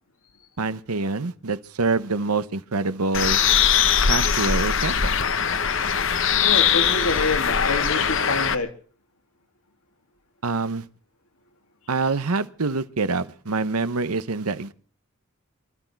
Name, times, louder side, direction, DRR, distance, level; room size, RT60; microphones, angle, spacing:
voice 1, 0.6-3.4 4.1-5.1 10.4-10.9 11.9-14.7, right 3 dB, 80° right, 1.0 m, -25 dB
Bird, 3.1-8.6, left 7 dB, 55° left, 1.0 m, -21 dB
voice 2, 6.4-8.7, left 3 dB, 80° left, 2.7 m, -26 dB
24.0 x 13.0 x 4.6 m
head